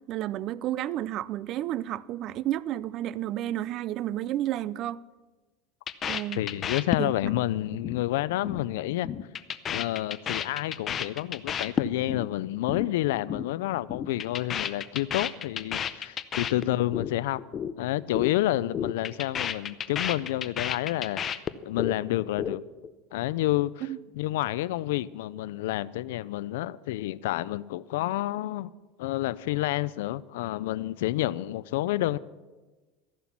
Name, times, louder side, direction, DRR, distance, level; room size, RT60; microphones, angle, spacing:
voice 1, 0.1-5.0 6.0-6.4 7.0-7.1 16.7-16.8 23.8-24.0, right 13 dB, 45° right, 0.4 m, -31 dB
sound 1, 5.9-7.4 7.7-8.0 8.3-8.6 8.9-12.3 12.5-12.9 13.1-13.5 13.7-17.1 17.4-17.7 18.0-18.3 18.6-22.0 22.2-22.9, left 8 dB, 30° left, 0.6 m, -31 dB
voice 2, 6.4-9.1 9.7-17.4 17.8-21.2 21.6-22.6 23.1-23.9 24.2-28.7 29.0-32.2, left 15 dB, 85° left, 0.4 m, -29 dB
14.0 x 11.0 x 6.0 m
supercardioid pair, 145°, 0 cm